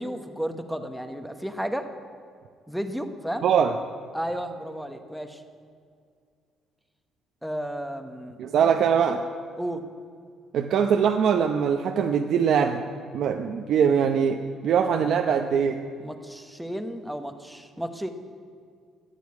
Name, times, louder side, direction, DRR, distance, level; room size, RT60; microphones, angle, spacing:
voice 1, 0.0-1.9 2.7-3.5 4.1-5.4 7.4-8.4 9.6-9.8 16.0-18.1, equal, ahead, 6 dB, 1.0 m, -33 dB
voice 2, 3.4-3.7 8.4-9.2 10.5-12.8 13.1-15.8, right 7 dB, 65° right, 4 dB, 0.8 m, -22 dB
14.0 x 9.3 x 9.5 m, 2.2 s
cardioid pair, 125°, 0 cm